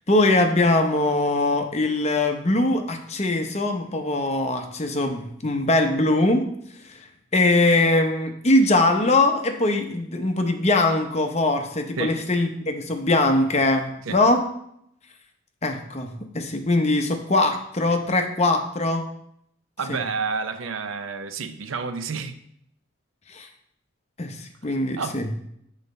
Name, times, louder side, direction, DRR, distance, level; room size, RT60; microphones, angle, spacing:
voice 1, 0.1-6.4 6.8-7.1 7.3-14.4 15.6-19.0 19.9-20.0 23.3-23.5 24.2-25.3, left 2 dB, 30° left, 5 dB, 0.7 m, -22 dB
voice 2, 19.8-22.4 25.0-25.2, right 5 dB, 75° right, 10 dB, 0.6 m, -29 dB
7.3 x 4.1 x 5.3 m, 0.74 s
head